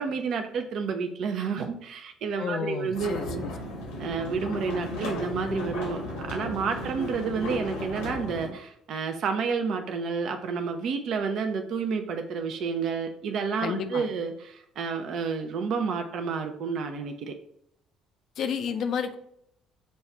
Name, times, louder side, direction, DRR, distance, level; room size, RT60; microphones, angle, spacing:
voice 1, 0.0-3.4 4.0-6.0 6.3-17.3, right 5 dB, 60° right, 6 dB, 0.4 m, -30 dB
voice 2, 2.4-3.5 13.6-14.1 18.4-19.2, left 7 dB, 60° left, 7 dB, 0.4 m, -31 dB
sound 1, 2.9-8.5, left 1 dB, 85° left, 1.3 m, -35 dB
5.2 x 2.4 x 4.1 m, 0.74 s
hypercardioid pair, 55°, 0 cm